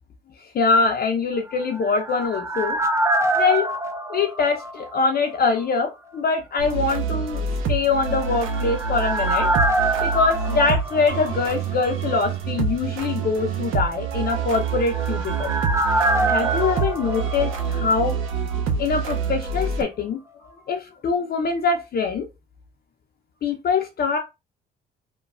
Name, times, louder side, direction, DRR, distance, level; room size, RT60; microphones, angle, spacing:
voice 1, 0.5-2.8 3.4-3.6 4.1-9.5 10.0-15.5 16.3-18.2 18.8-20.2 20.7-22.3 23.4-24.2, left 4 dB, 50° left, 3 dB, 0.5 m, -23 dB
sound 1, 1.5-5.3 5.6-5.7 8.1-11.8 12.1-12.2 14.4-18.3 18.5-18.6, right 2 dB, 15° right, 0.4 m, -25 dB
sound 2, 6.6-19.8, right 6 dB, 85° right, 0.6 m, -27 dB
3.1 x 2.2 x 2.3 m, 0.24 s
cardioid pair, 90°, 20 cm